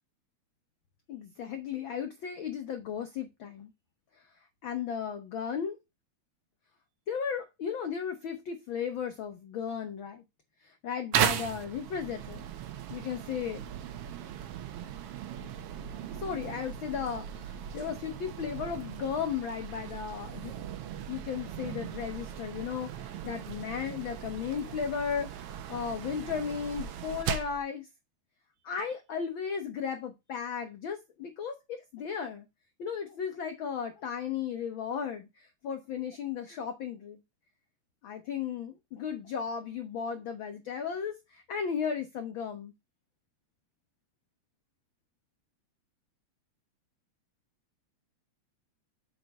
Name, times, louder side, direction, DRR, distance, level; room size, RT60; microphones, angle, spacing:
voice 1, 1.1-3.7 4.1-4.3 4.6-5.8 7.1-10.2 10.6-12.4 12.9-13.6 16.1-20.5 21.1-27.9 28.6-32.5 32.8-37.2 38.0-42.7, left 7 dB, 70° left, 1.2 m, -35 dB
sound 1, 11.1-27.6, right 9 dB, 65° right, 1.5 m, -37 dB
7.7 x 4.4 x 5.3 m
omnidirectional pair, 3.3 m